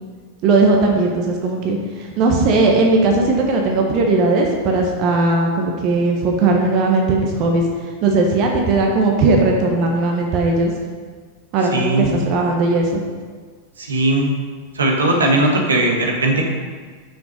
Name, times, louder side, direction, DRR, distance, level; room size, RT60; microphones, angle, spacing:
voice 1, 0.4-7.7 8.0-10.7 11.5-13.0, right 3 dB, 40° right, 1 dB, 1.2 m, -17 dB
voice 2, 11.7-12.1 13.8-14.3 14.7-16.4, right 2 dB, 70° right, 1 dB, 1.4 m, -18 dB
7.7 x 6.3 x 5.3 m, 1.5 s
figure-of-eight pair, 90°, 0 cm